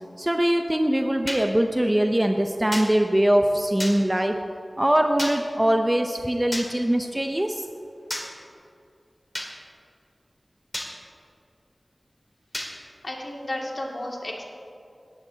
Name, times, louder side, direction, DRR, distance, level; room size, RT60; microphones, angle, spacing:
voice 1, 0.2-4.4 4.8-7.7, right 1 dB, 20° right, 4 dB, 0.6 m, -22 dB
sound 1, 1.3-1.4 2.7-2.9 3.8-4.0 5.2-5.4 6.5-6.7 8.1-8.3 9.3-9.5 10.7-10.9 12.5-12.7, left 1 dB, 25° left, 2.0 m, -30 dB
voice 2, 13.0-14.4, left 1 dB, 55° left, -2 dB, 2.3 m, -32 dB
17.0 x 12.5 x 2.8 m, 2.5 s
wide cardioid pair, 55°, 0 cm